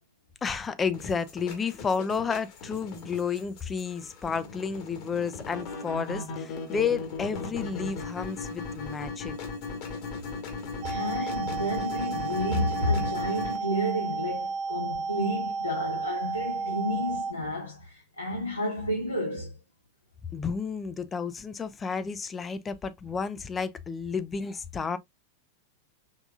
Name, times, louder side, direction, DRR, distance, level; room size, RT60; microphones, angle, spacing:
voice 1, 0.4-9.4 11.2-11.3 20.3-25.0, left 5 dB, 20° left, 0.5 m, -31 dB
sound 1, 0.9-13.6, left 4 dB, 45° left, 1.5 m, -38 dB
voice 2, 10.8-19.5, equal, 85° left, 1.0 m, -31 dB
sound 2, 10.8-17.3, right 4 dB, 40° right, 0.6 m, -32 dB
5.5 x 3.5 x 2.3 m
figure-of-eight pair, 90°, 0 cm